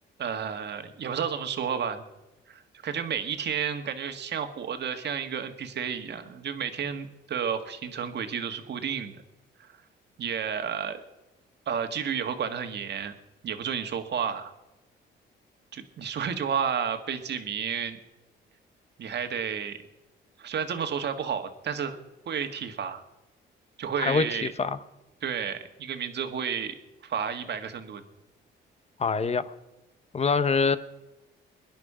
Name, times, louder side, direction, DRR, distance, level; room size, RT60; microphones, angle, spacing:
voice 1, 0.2-2.0 2.5-9.2 9.6-9.7 10.2-11.0 11.7-13.1 13.4-14.5 15.7-18.0 19.0-19.8 20.4-22.0 22.2-23.0 23.8-24.5 25.2-26.8 27.0-28.0, right 7 dB, 60° right, 7 dB, 1.7 m, -31 dB
voice 2, 24.0-24.8 29.0-29.5 30.1-30.8, left 4 dB, 35° left, 14 dB, 0.9 m, -25 dB
22.5 x 10.5 x 5.0 m, 1.0 s
cardioid pair, 90°, 20 cm